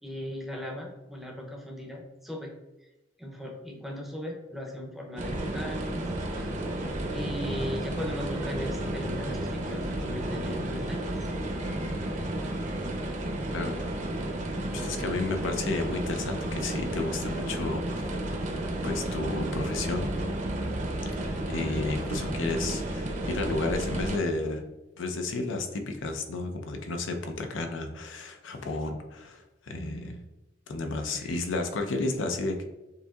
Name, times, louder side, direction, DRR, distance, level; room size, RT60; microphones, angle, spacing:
voice 1, 0.0-2.5 3.2-6.0 6.3-6.5 7.1-11.1 31.1-31.4, left 1 dB, ahead, 0 dB, 0.6 m, -38 dB
sound 1, 5.2-24.2, right 1 dB, 40° right, 0.6 m, -32 dB
voice 2, 14.7-17.8 18.8-20.1 21.5-24.7 25.0-30.2 30.7-32.6, left 2 dB, 80° left, 5 dB, 0.6 m, -32 dB
6.6 x 2.8 x 2.3 m, 1.0 s
head